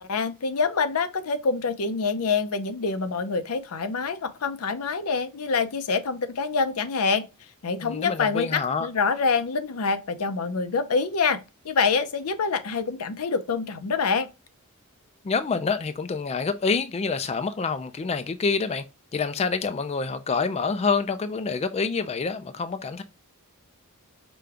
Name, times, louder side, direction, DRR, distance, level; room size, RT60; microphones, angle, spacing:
voice 1, 0.0-7.3 7.6-14.3, left 5 dB, 75° left, 0.6 m, -26 dB
voice 2, 7.8-8.9 15.2-18.8 19.1-23.0, left 4 dB, 30° left, 0.3 m, -27 dB
5.1 x 2.3 x 3.3 m
head